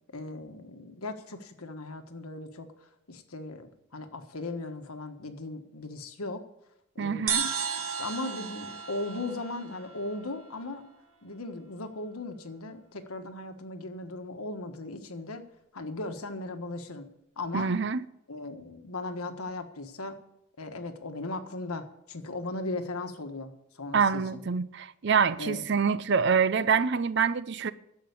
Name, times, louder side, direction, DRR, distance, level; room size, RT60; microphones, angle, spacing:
voice 1, 0.1-6.4 6.9-7.6 8.0-10.8 11.2-15.4 15.7-17.0 17.4-17.7 18.3-20.2 20.6-24.4 25.4-25.7, left 2 dB, 85° left, 1.4 m, -37 dB
voice 2, 7.0-7.5 17.5-18.0 23.9-27.7, right 6 dB, 50° right, 0.5 m, -26 dB
sound 1, 7.3-10.8, right 6 dB, 75° right, 1.8 m, -34 dB
11.5 x 7.8 x 8.1 m
head